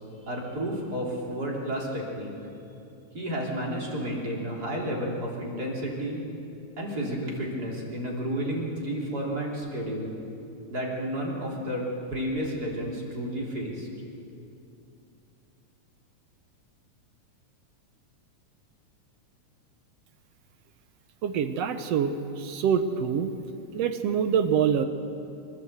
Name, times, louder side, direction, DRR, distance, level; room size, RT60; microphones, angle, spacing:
voice 1, 0.3-2.3 3.1-6.2 6.8-10.1 10.7-11.9 12.1-13.9, equal, 30° right, -3 dB, 3.5 m, -31 dB
voice 2, 21.2-23.3 23.7-24.9, right 7 dB, 70° right, 9 dB, 1.7 m, -25 dB
25.5 x 13.0 x 8.0 m, 2.7 s
omnidirectional pair, 3.4 m